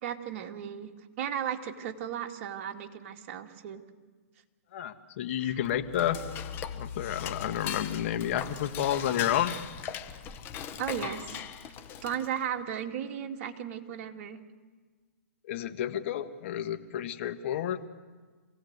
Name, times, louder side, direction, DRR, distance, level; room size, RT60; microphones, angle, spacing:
voice 1, 0.0-0.9 1.2-3.8 5.4-5.6 10.8-11.4 12.0-14.4, right 9 dB, 50° right, 3 dB, 2.3 m, -35 dB
voice 2, 4.7-6.2 6.7-9.5 15.5-17.8, left 11 dB, 50° left, 8 dB, 1.7 m, -30 dB
Dishes pots and pans / Cutlery silverware, 5.6-12.5, left 8 dB, 25° left, 1.2 m, -39 dB
26.5 x 17.5 x 8.2 m, 1.4 s
hypercardioid pair, 135°, 9 cm